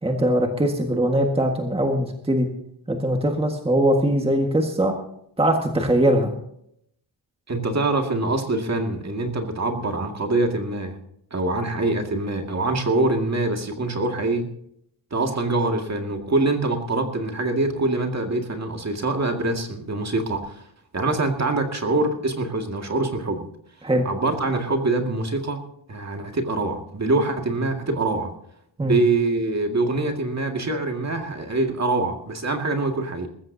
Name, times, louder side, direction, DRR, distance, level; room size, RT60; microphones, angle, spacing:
voice 1, 0.0-2.5 2.9-4.9 5.4-6.3 23.8-24.1 28.8-28.9, right 1 dB, 10° right, 2 dB, 1.6 m, -21 dB
voice 2, 7.5-11.0 11.3-14.5 15.1-20.6 20.9-23.4 24.0-25.6 25.9-28.3 28.8-33.3, right 2 dB, 35° right, 4 dB, 2.1 m, -24 dB
21.0 x 14.5 x 2.8 m, 0.71 s
wide cardioid pair, 130°, 45 cm